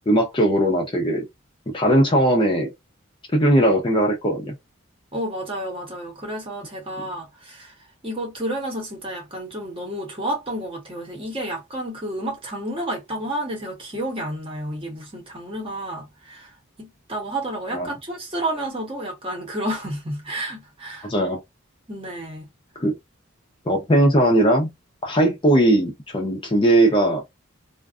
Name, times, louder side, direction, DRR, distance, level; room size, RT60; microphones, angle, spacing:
voice 1, 0.1-1.2 1.7-2.7 3.3-4.5 17.7-17.9 21.0-21.4 22.8-22.9 23.7-24.7 25.0-27.2, right 1 dB, 25° left, 0.5 m, -19 dB
voice 2, 5.1-7.7 8.0-16.5 16.8-21.1 21.9-22.5, right 1 dB, 25° right, 0.9 m, -30 dB
2.5 x 2.3 x 2.3 m
head